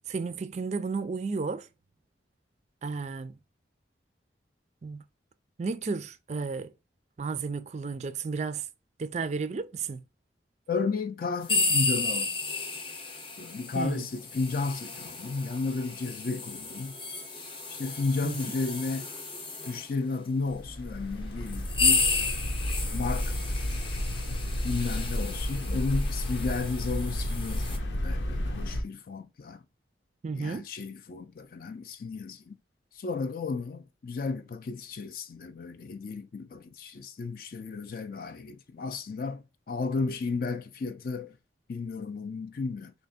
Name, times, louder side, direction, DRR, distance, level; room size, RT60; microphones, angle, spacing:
voice 1, 0.1-1.7 2.8-3.4 4.8-5.0 5.6-6.7 7.2-8.7 9.0-10.0 13.7-14.1 18.2-18.6 30.2-30.7, right 4 dB, 40° right, 0.3 m, -33 dB
voice 2, 10.7-12.4 13.4-17.0 17.7-19.1 19.7-22.1 22.9-23.4 24.6-29.6 30.3-32.6 32.9-41.4 41.7-42.9, left 4 dB, 50° left, 0.4 m, -33 dB
sound 1, 11.4-19.9 20.7-20.8 21.4-27.8, left 3 dB, 25° left, 0.7 m, -32 dB
sound 2, 20.5-28.8, left 1 dB, 90° left, 0.9 m, -32 dB
3.3 x 2.8 x 4.1 m
head